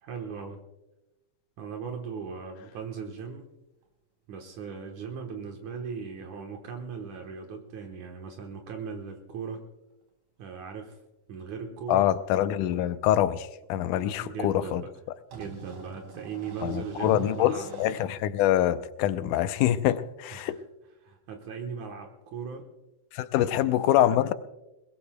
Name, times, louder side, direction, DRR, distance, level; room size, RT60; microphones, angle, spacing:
voice 1, 0.0-0.6 1.6-3.4 4.3-9.6 10.4-11.0 11.3-12.1 13.9-14.9 15.3-17.7 20.3-20.5 21.0-22.7 23.4-23.7, right 6 dB, 75° right, 2.5 m, -38 dB
sound 1, 1.8-1.9 2.4-2.5 5.4-5.5 5.7-5.8 6.9-7.3 8.7-8.8 9.1-9.2 10.4-10.5 12.2-12.3 13.2-13.3 13.8-14.0 15.3-18.0, right 4 dB, 90° right, 4.3 m, -46 dB
voice 2, 11.9-14.8 16.6-20.6 23.1-24.3, left 12 dB, 85° left, 2.2 m, -25 dB
22.0 x 20.5 x 2.2 m
omnidirectional pair, 3.6 m